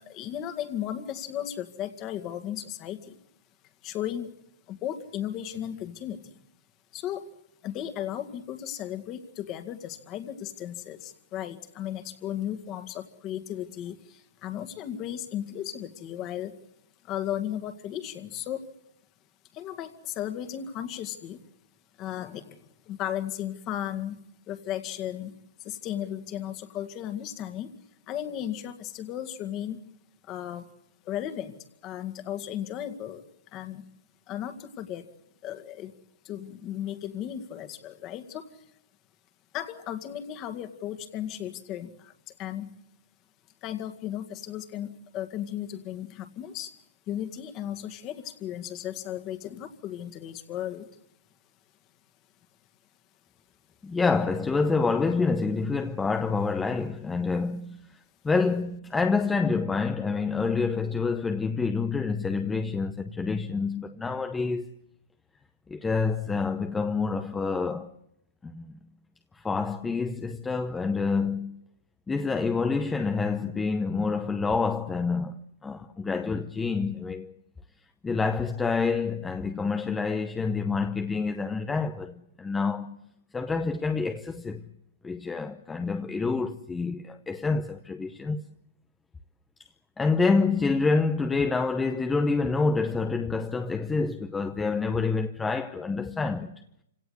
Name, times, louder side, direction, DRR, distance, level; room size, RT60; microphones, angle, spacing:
voice 1, 0.0-3.2 3.8-4.3 4.7-6.4 6.9-7.3 7.6-16.6 17.0-18.7 19.5-21.4 22.0-24.2 24.5-25.3 25.6-27.8 28.1-29.8 30.2-30.7 31.0-33.2 33.5-33.8 34.3-35.1 35.4-35.9 36.2-38.7 39.5-42.7 43.6-46.8 47.1-50.9, left 11 dB, 30° left, 2.0 m, -35 dB
voice 2, 53.8-58.0 58.2-64.7 65.7-67.9 68.4-68.7 69.3-71.6 72.1-77.3 78.0-83.0 83.3-84.6 85.0-88.4 90.0-96.6, left 4 dB, 10° left, 0.8 m, -27 dB
27.0 x 17.5 x 8.1 m
hypercardioid pair, 145°, 0 cm